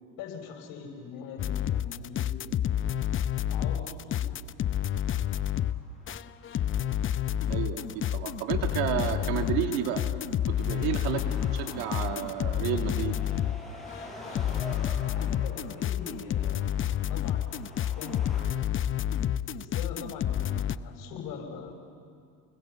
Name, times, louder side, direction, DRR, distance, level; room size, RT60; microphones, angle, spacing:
voice 1, 0.2-2.6 3.5-4.4 15.1-16.7 17.1-18.6 19.5-21.7, left 6 dB, 65° left, 3 dB, 6.3 m, -42 dB
sound 1, 1.4-13.6 13.9-20.8, left 10 dB, 35° left, 0.7 m, -29 dB
sound 2, 5.0-18.4, left 1 dB, ahead, 7.6 m, -48 dB
voice 2, 7.5-10.0 10.5-13.1, right 10 dB, 75° right, 4 dB, 2.8 m, -31 dB
29.5 x 21.0 x 8.1 m, 2.3 s
supercardioid pair, 90°, 37 cm